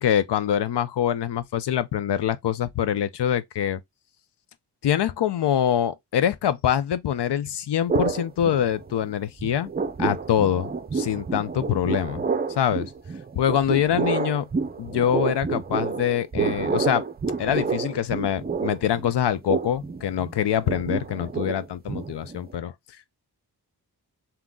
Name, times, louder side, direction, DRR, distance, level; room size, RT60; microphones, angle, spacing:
voice 1, 0.0-3.8 4.8-9.7 10.0-12.2 12.6-12.9 13.4-14.5 14.8-17.0 17.4-22.7, left 10 dB, 80° left, 0.6 m, -24 dB
sound 1, 7.9-9.1 9.4-22.6, right 5 dB, 25° right, 0.5 m, -29 dB
3.7 x 2.9 x 3.6 m
cardioid pair, 65°, 41 cm